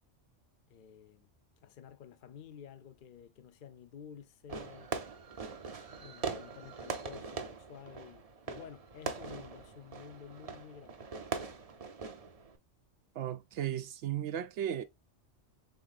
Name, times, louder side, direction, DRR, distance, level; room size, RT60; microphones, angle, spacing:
voice 1, 0.7-1.3 1.6-5.0 5.9-11.1, left 8 dB, 55° left, 0.6 m, -51 dB
Fireworks, 4.5-12.6, right 5 dB, 40° right, 0.6 m, -42 dB
voice 2, 13.1-14.8, right 10 dB, 75° right, 0.9 m, -35 dB
5.2 x 3.7 x 2.4 m
omnidirectional pair, 1.2 m